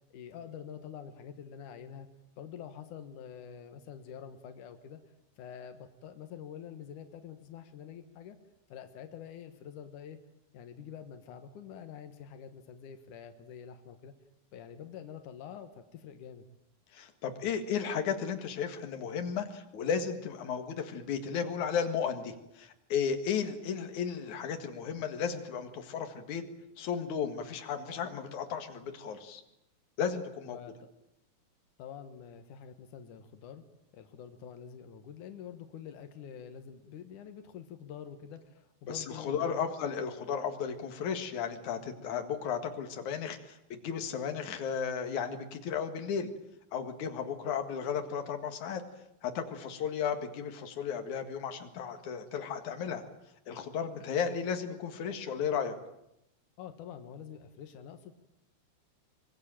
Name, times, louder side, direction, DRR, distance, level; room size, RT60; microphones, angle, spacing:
voice 1, 0.0-2.1 2.4-5.0 5.4-8.4 8.7-10.2 10.5-14.1 14.5-16.5 30.4-30.8 31.8-33.7 33.9-39.7 56.6-58.1, left 8 dB, 85° left, 7 dB, 1.7 m, -46 dB
voice 2, 16.9-26.4 26.8-29.4 30.0-30.6 38.9-46.3 46.7-48.8 49.2-53.0 53.5-55.7, left 7 dB, 55° left, 6 dB, 2.3 m, -34 dB
24.5 x 22.5 x 9.1 m, 0.84 s
omnidirectional pair, 6.0 m